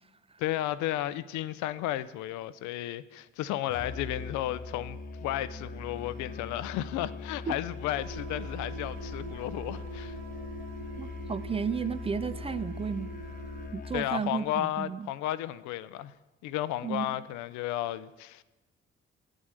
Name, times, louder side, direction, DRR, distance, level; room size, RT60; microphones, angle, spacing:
voice 1, 0.4-10.2 13.9-16.1 16.4-18.4, left 13 dB, 70° left, 0.5 m, -33 dB
Musical instrument, 3.7-14.1, left 3 dB, 25° left, 1.0 m, -41 dB
sound 1, 8.0-13.7, right 4 dB, 75° right, 1.0 m, -45 dB
voice 2, 11.0-13.1 13.7-15.1 16.8-17.1, right 6 dB, 20° right, 0.3 m, -33 dB
8.2 x 6.2 x 6.4 m
hypercardioid pair, 45°, 30 cm